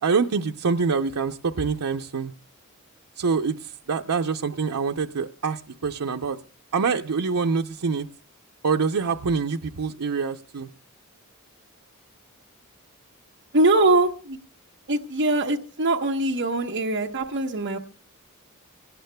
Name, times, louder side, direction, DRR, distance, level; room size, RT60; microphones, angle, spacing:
voice 1, 0.0-2.3 3.2-6.4 6.7-8.1 8.6-10.7, right 5 dB, 90° right, 4 dB, 0.6 m, -25 dB
voice 2, 13.5-14.4 14.9-17.8, right 2 dB, 55° right, 1 dB, 1.0 m, -22 dB
24.5 x 18.0 x 2.2 m, 0.37 s
head